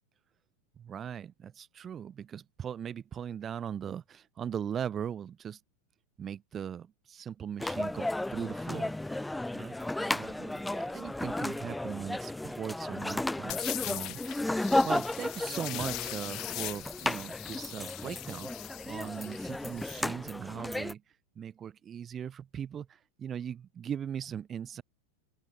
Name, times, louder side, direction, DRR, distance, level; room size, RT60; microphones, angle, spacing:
voice 1, 0.8-5.6 6.2-9.3 9.5-14.2 14.5-18.5 18.8-21.0 21.4-24.8, right 8 dB, 25° right, 5.4 m, -39 dB
sound 1, 7.6-20.9, left 1 dB, 5° left, 1.6 m, -34 dB
sound 2, 13.5-20.1, left 19 dB, 40° left, 3.4 m, -40 dB
open air
figure-of-eight pair, 90°, 0 cm